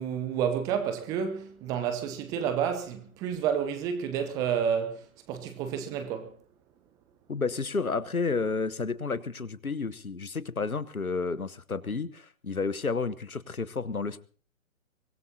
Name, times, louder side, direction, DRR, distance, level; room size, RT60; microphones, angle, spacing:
voice 1, 0.0-6.3, right 8 dB, 10° right, 0.7 m, -30 dB
voice 2, 7.3-14.2, left 4 dB, 85° left, 1.3 m, -31 dB
24.0 x 18.0 x 2.8 m
figure-of-eight pair, 130°, 42 cm